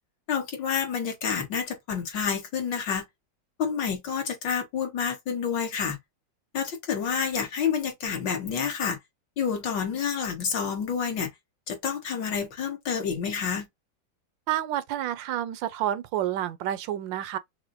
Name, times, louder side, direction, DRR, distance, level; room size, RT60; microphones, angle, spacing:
voice 1, 0.3-3.0 3.6-6.0 6.5-9.0 9.4-11.3 11.7-13.7, left 7 dB, 70° left, 2.1 m, -29 dB
voice 2, 14.5-17.4, right 12 dB, 75° right, 1.3 m, -29 dB
5.9 x 2.1 x 2.6 m
omnidirectional pair, 2.1 m